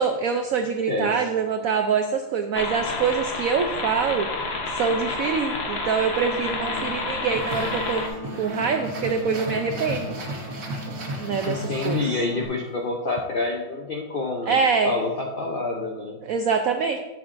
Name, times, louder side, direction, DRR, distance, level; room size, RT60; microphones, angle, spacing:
voice 1, 0.0-4.3 4.7-8.0 8.4-10.1 11.2-12.0 14.5-14.9 16.2-17.0, right 6 dB, 80° right, 6 dB, 0.7 m, -24 dB
sound 1, 2.5-8.1, left 3 dB, 45° left, 0.8 m, -29 dB
sound 2, 6.0-12.5, left 2 dB, 25° right, 1.9 m, -39 dB
sound 3, 7.3-12.6, right 2 dB, 55° right, 1.6 m, -35 dB
voice 2, 11.4-14.6 14.8-16.2, left 3 dB, 70° left, 1 dB, 0.5 m, -27 dB
11.0 x 7.9 x 2.5 m, 1.1 s
omnidirectional pair, 2.0 m